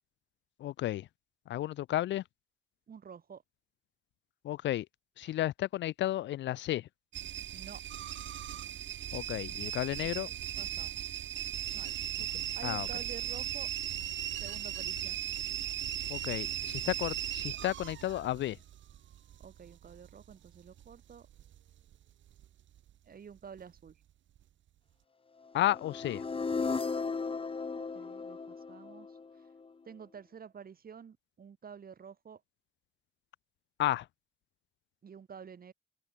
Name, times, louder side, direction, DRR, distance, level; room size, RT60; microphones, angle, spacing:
voice 1, 0.6-1.1 1.5-2.2 4.4-4.9 5.2-6.9 9.1-10.3 12.3-12.9 16.1-18.6 25.5-26.2 33.8-34.1, left 14 dB, 65° left, 0.5 m, -33 dB
voice 2, 2.9-3.4 5.2-5.3 7.5-7.8 10.2-11.3 11.7-11.9 12.2-13.7 14.4-15.3 19.4-21.3 23.1-24.0 27.7-29.5 29.8-32.4 35.0-35.7, right 7 dB, 50° right, 7.5 m, -50 dB
sound 1, 7.1-22.0 22.3-22.9 23.4-23.9 24.4-24.5, right 11 dB, 70° right, 3.0 m, -38 dB
sound 2, 25.6-29.7, left 4 dB, 25° left, 1.6 m, -36 dB
open air
cardioid pair, 90°, 20 cm